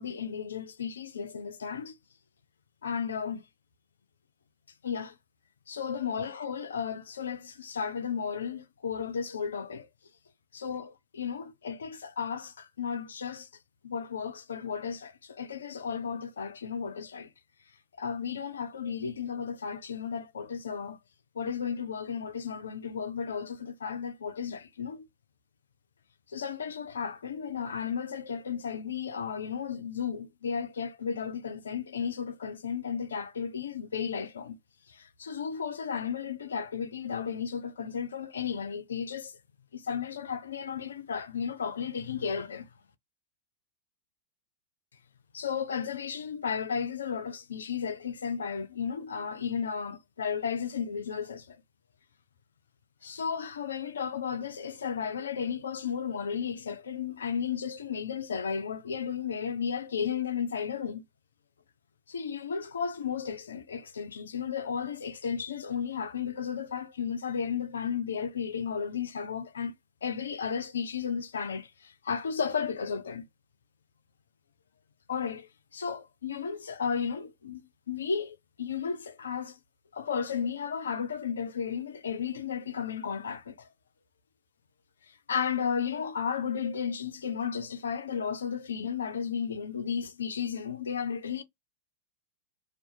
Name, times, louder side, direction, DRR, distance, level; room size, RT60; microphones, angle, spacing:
voice 1, 0.0-1.9 2.8-3.4 4.8-5.1 5.7-9.9 10.5-13.5 13.8-17.3 18.0-21.0 21.4-25.0 26.3-34.5 34.9-39.3 39.7-42.7 45.3-51.6 53.0-61.0 62.1-69.7 70.0-73.2 75.1-75.5 75.7-79.6 79.9-83.7 85.3-91.4, left 7 dB, 70° left, 0.4 m, -34 dB
2.3 x 2.3 x 2.6 m
figure-of-eight pair, 90°, 0 cm